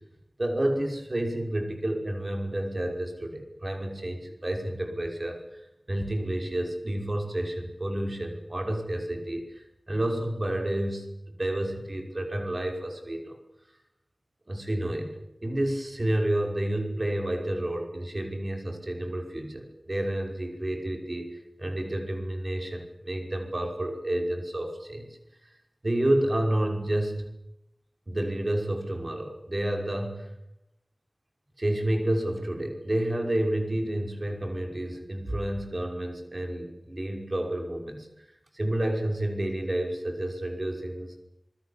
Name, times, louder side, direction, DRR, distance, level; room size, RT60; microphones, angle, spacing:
voice 1, 0.4-5.6 5.9-13.4 14.5-15.2 15.4-25.2 25.8-27.3 28.1-30.3 31.6-38.2 38.5-41.2, right 1 dB, 45° right, 4 dB, 5.7 m, -30 dB
27.0 x 20.5 x 8.5 m, 0.85 s
wide cardioid pair, 45°, 0 cm